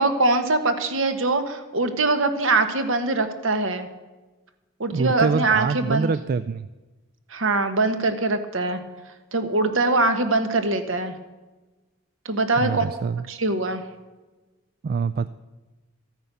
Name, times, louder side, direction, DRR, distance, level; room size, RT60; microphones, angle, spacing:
voice 1, 0.0-3.9 4.8-6.1 7.3-8.8 9.3-11.1 12.2-12.8 13.3-13.8, right 2 dB, 65° right, 8 dB, 1.3 m, -22 dB
voice 2, 4.9-6.7 12.6-13.2 14.8-15.3, right 5 dB, 45° right, 14 dB, 0.3 m, -25 dB
14.0 x 9.0 x 6.8 m, 1.2 s
head